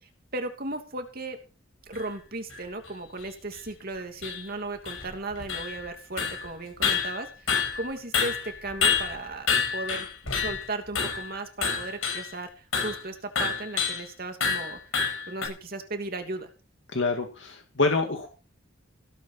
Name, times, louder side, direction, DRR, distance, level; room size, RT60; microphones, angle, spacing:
voice 1, 0.0-1.4 1.9-14.8 15.3-16.5, right 2 dB, 45° right, 5 dB, 2.8 m, -36 dB
sound 1, 1.9-2.0 2.5-2.6 3.2-3.3 3.5-3.6 4.2-4.4 4.8-5.9 6.2-6.5 6.8-10.6 10.9-11.3 11.6-12.3 12.7-13.0 13.4-14.0 14.4-15.5, left 6 dB, 75° left, 6.1 m, -28 dB
voice 2, 16.9-18.3, left 3 dB, 60° left, 4 dB, 2.3 m, -26 dB
17.5 x 9.1 x 5.7 m, 0.34 s
head